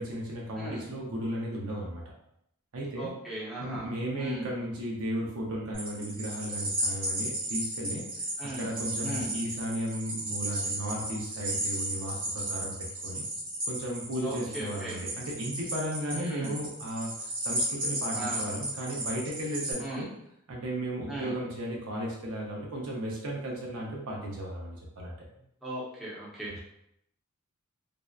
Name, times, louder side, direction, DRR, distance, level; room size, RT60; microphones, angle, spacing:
voice 1, 0.0-2.0 2.7-3.1 3.6-8.0 8.4-12.7 13.0-13.2 13.6-20.1 20.5-25.1, right 1 dB, 90° right, -3 dB, 0.6 m, -35 dB
voice 2, 3.0-3.9 4.2-4.5 8.4-8.7 9.0-9.3 14.2-15.1 16.1-16.6 18.1-18.5 19.8-20.0 21.1-21.3 25.6-26.6, right 1 dB, ahead, -8 dB, 0.7 m, -37 dB
sound 1, 5.7-19.7, right 1 dB, 45° right, 1.3 m, -34 dB
2.6 x 2.1 x 2.3 m, 0.77 s
head